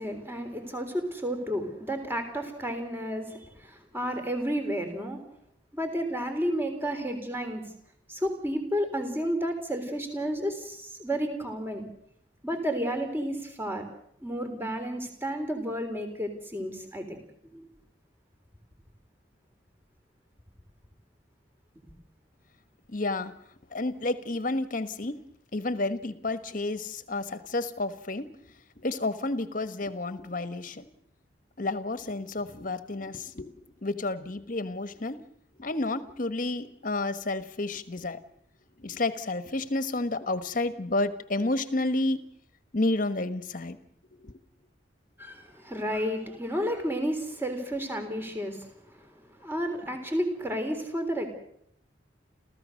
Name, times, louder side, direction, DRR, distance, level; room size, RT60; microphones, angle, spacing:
voice 1, 0.0-5.2 5.7-7.6 8.1-11.9 12.4-13.8 14.2-17.2 17.5-17.7 45.2-49.1 49.4-51.3, equal, 10° right, 5 dB, 3.6 m, -31 dB
voice 2, 22.9-23.4 23.7-25.2 25.5-28.3 28.8-30.9 31.6-33.5 33.8-35.2 35.6-38.2 38.8-42.2 42.7-43.8 44.1-44.3, left 2 dB, 45° left, 11 dB, 1.4 m, -30 dB
30.0 x 15.0 x 6.5 m, 0.70 s
head